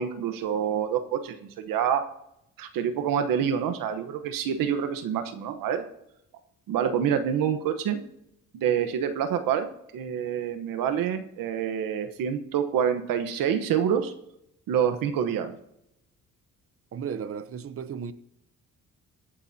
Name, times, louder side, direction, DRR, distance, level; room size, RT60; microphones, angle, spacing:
voice 1, 0.0-2.1 2.6-5.9 6.7-8.0 8.5-14.1 14.7-15.5, right 8 dB, 90° right, 1.1 m, -27 dB
voice 2, 16.9-18.1, right 7 dB, 45° right, 0.8 m, -34 dB
24.0 x 8.4 x 2.8 m
cardioid pair, 85°, 32 cm